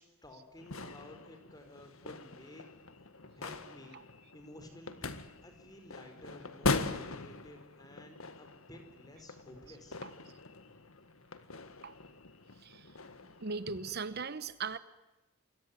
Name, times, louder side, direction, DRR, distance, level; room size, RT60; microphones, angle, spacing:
voice 1, 0.0-2.7 3.3-4.0 4.3-10.0, left 1 dB, 20° left, 6 dB, 4.5 m, -53 dB
sound 1, 0.6-14.0, left 3 dB, 80° left, 1.8 m, -41 dB
voice 2, 12.6-12.9 13.4-14.8, right 4 dB, 50° right, 13 dB, 1.0 m, -39 dB
28.0 x 22.0 x 9.7 m, 1.0 s
head